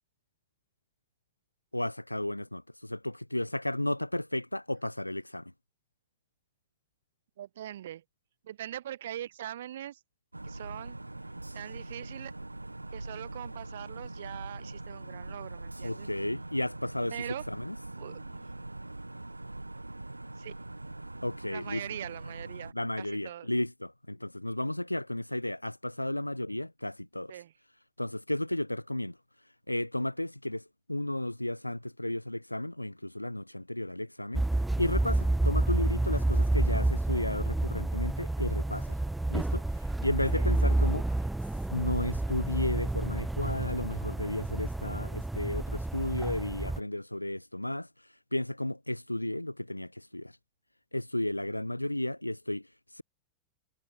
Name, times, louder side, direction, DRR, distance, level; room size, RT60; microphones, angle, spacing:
voice 1, 1.7-5.5 15.8-17.8 21.2-21.8 22.7-27.4 28.0-34.4 34.8-39.0 39.3-41.2 41.5-50.4 50.9-53.0, left 1 dB, 85° left, 1.6 m, -33 dB
voice 2, 7.4-8.0 8.4-10.0 10.4-11.0 11.5-12.4 12.9-16.1 17.1-17.5 18.0-18.5 20.4-20.7 21.5-23.5 27.3-27.5 40.3-40.5, right 11 dB, 60° right, 1.9 m, -42 dB
sound 1, 10.3-22.7, right 2 dB, 85° right, 1.5 m, -42 dB
sound 2, 34.3-46.8, right 2 dB, 5° right, 1.0 m, -29 dB
figure-of-eight pair, 90°, 0 cm